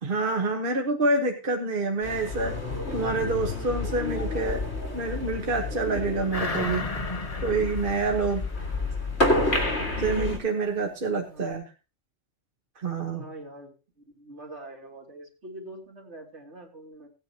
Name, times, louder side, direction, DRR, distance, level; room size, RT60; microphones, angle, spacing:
voice 1, 0.0-2.5 2.9-4.6 4.9-6.9 7.4-8.4 10.0-11.6 12.8-13.2, right 3 dB, 50° right, 2 dB, 1.4 m, -27 dB
sound 1, 2.0-10.4, left 2 dB, 65° left, 2.4 m, -30 dB
sound 2, 6.3-9.2 9.6-9.7, left 2 dB, 30° left, 1.2 m, -34 dB
voice 2, 13.1-17.1, right 1 dB, 70° right, 0 dB, 3.0 m, -44 dB
17.0 x 9.1 x 2.9 m, 0.30 s
omnidirectional pair, 1.2 m